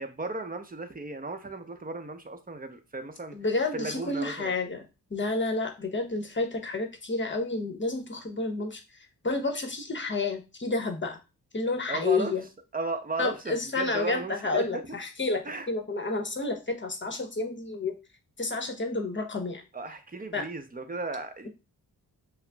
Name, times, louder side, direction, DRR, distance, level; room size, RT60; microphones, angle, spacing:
voice 1, 0.0-3.4 3.7-4.5 11.9-12.3 12.7-14.8 15.4-15.7 19.7-21.5, right 3 dB, 20° right, 7 dB, 0.7 m, -35 dB
voice 2, 3.3-4.8 5.1-8.8 9.2-11.2 11.5-12.4 13.2-17.9 18.4-19.6 20.3-20.5, left 3 dB, 30° left, 5 dB, 0.8 m, -30 dB
5.5 x 2.0 x 2.3 m, 0.29 s
cardioid pair, 55°, 40 cm